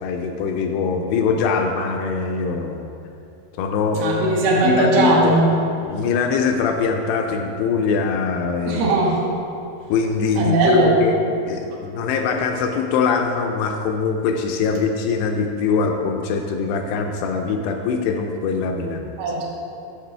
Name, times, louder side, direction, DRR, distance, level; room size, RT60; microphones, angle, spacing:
voice 1, 0.0-2.9 3.6-5.4 5.9-8.9 9.9-11.2 11.5-19.1, left 5 dB, 80° left, 4 dB, 2.4 m, -23 dB
voice 2, 4.0-5.5 8.6-9.2 10.3-11.0 19.2-19.4, right 2 dB, 80° right, -5 dB, 1.2 m, -18 dB
11.5 x 7.3 x 3.3 m, 2.6 s
omnidirectional pair, 5.2 m